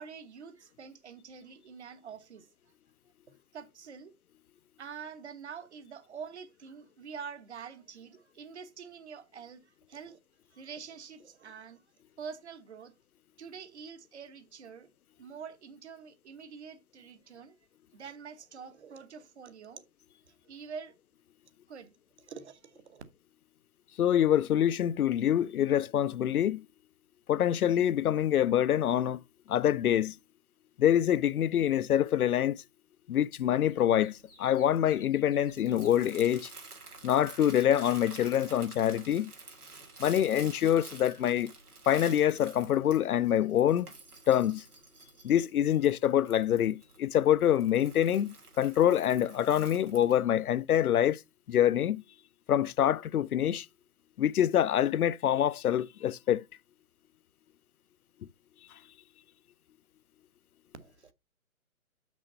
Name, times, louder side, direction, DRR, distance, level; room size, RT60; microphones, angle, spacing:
voice 1, 0.0-2.5 3.3-4.1 4.8-10.2 10.5-11.8 12.2-12.9 13.4-14.9 15.2-17.6 17.9-19.8 20.3-20.9 21.7-23.0 60.8-61.1, right 6 dB, 50° right, 1.2 m, -46 dB
voice 2, 24.0-26.6 27.3-29.2 29.5-30.1 30.8-32.6 33.1-36.5 37.0-39.3 40.0-41.5 41.9-43.9 44.3-44.6 45.2-51.2 51.5-52.0 52.5-53.7 54.2-56.4, left 10 dB, 75° left, 0.5 m, -26 dB
sound 1, 33.6-36.0, left 2 dB, 5° left, 0.5 m, -60 dB
Crumpling crinkling, 33.8-50.2, right 3 dB, 85° right, 3.1 m, -50 dB
6.1 x 5.4 x 5.4 m
figure-of-eight pair, 145°, 44 cm